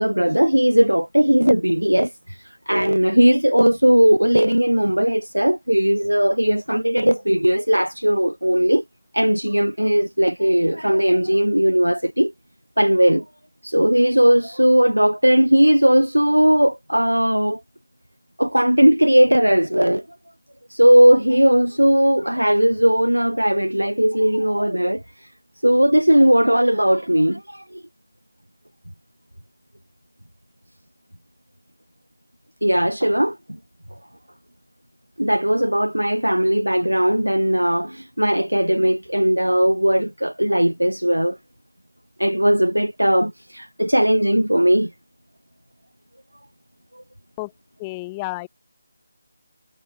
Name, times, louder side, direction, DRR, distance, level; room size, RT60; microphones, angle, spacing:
voice 1, 0.0-8.8 9.1-12.3 12.8-13.3 13.6-17.6 18.4-20.1 20.7-25.3 25.6-27.8 32.6-33.4 35.2-41.4 42.2-44.9 47.0-47.1, equal, 85° right, 0.4 m, -18 dB
voice 2, 47.8-48.5, left 24 dB, 15° left, 0.7 m, -30 dB
figure-of-eight pair, 155°, 0 cm